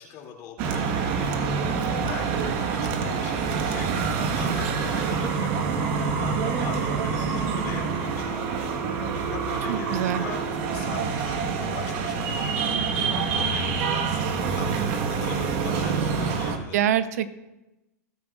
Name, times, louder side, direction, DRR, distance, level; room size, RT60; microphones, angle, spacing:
voice 1, 0.0-1.4 1.8-5.5 6.2-8.8 9.3-10.4 10.7-16.8, left 7 dB, 40° left, 1 dB, 2.6 m, -41 dB
sound 1, 0.6-16.6, right 5 dB, 45° right, 1.4 m, -26 dB
voice 2, 9.7-10.2 16.7-17.3, right 10 dB, 70° right, 12 dB, 0.7 m, -24 dB
17.5 x 7.8 x 2.4 m, 1.0 s
hypercardioid pair, 135°, 9 cm